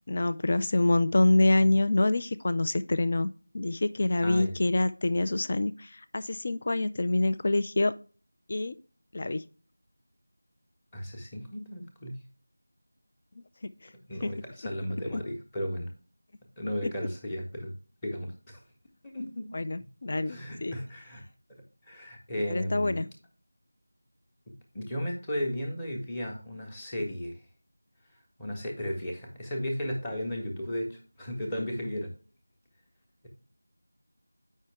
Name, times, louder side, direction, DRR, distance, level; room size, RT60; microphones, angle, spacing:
voice 1, 0.1-7.9 8.5-8.7 9.1-9.4 13.6-13.7 14.2-14.3 19.5-20.7 22.5-23.1, left 2 dB, 35° left, 13 dB, 0.4 m, -26 dB
voice 2, 4.2-4.5 10.9-12.2 14.1-15.9 16.6-17.7 18.0-18.6 19.0-19.5 20.2-21.2 21.5-23.0 24.5-27.4 28.4-32.1, equal, 10° left, 2 dB, 1.0 m, -35 dB
8.2 x 5.5 x 3.2 m, 0.39 s
figure-of-eight pair, 170°, 0 cm